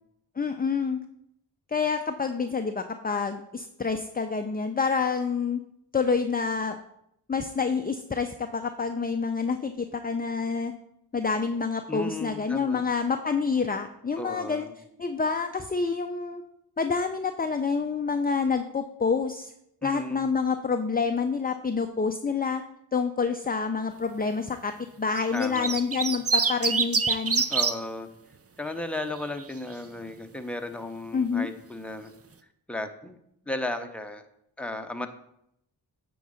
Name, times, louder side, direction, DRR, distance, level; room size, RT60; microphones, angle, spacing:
voice 1, 0.4-1.0 1.7-5.6 5.9-6.8 7.3-10.7 11.1-14.7 15.0-16.4 16.8-19.5 19.8-22.6 22.9-24.7 25.0-27.4 31.1-31.5, left 5 dB, 20° left, 6 dB, 0.6 m, -27 dB
voice 2, 11.9-12.8 14.2-14.7 19.8-20.3 25.3-25.8 27.5-28.1 28.6-32.1 32.7-33.2 33.4-34.2 34.6-35.1, left 2 dB, 5° left, 6 dB, 0.9 m, -34 dB
sound 1, 25.2-27.7 29.0-29.4, right 5 dB, 35° right, 0.7 m, -25 dB
9.2 x 3.9 x 6.5 m, 0.77 s
cardioid pair, 55°, 43 cm